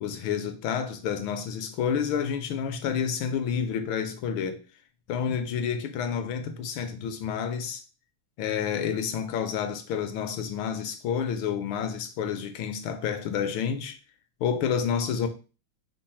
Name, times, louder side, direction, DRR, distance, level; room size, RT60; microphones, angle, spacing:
voice 1, 0.0-4.6 5.1-7.8 8.4-14.0 14.4-15.3, left 7 dB, 75° left, 1.3 m, -29 dB
5.2 x 2.0 x 4.2 m
omnidirectional pair, 2.4 m